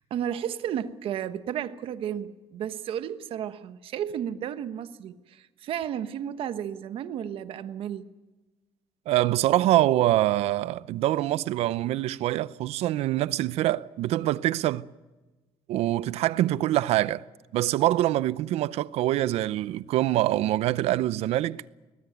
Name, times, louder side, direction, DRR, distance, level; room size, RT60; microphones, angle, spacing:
voice 1, 0.0-8.1, right 9 dB, 60° right, 1.2 m, -33 dB
voice 2, 9.1-14.8 15.7-17.2 17.5-21.6, right 14 dB, 75° right, 0.7 m, -24 dB
22.0 x 19.0 x 9.3 m
cardioid pair, 150°, 11 cm